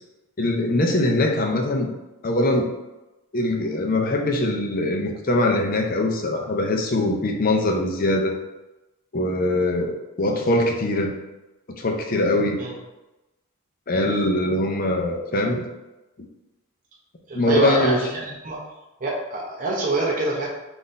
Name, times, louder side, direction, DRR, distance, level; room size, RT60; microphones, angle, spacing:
voice 1, 0.4-1.9 2.2-2.7 3.3-8.3 9.1-11.2 11.8-12.6 13.9-15.6 17.3-18.0, left 1 dB, 40° left, 2 dB, 0.5 m, -22 dB
voice 2, 17.3-18.6 19.0-20.5, right 2 dB, 35° right, -3 dB, 0.6 m, -25 dB
3.9 x 2.5 x 3.9 m, 1.0 s
head